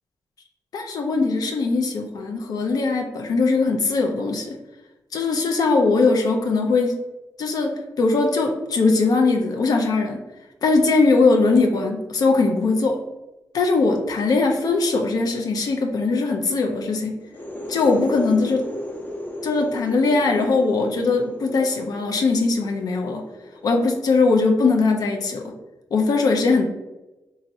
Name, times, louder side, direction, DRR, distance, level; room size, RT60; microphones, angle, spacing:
voice 1, 0.7-4.6 5.1-7.0 7.4-10.2 10.6-13.0 13.5-17.2 17.7-18.6 19.4-23.2 23.6-25.5 25.9-26.7, left 3 dB, 70° left, 2 dB, 0.4 m, -20 dB
sound 1, 17.2-24.7, left 1 dB, 25° left, 0.6 m, -36 dB
2.9 x 2.5 x 2.6 m, 1.0 s
cardioid pair, 55°, 7 cm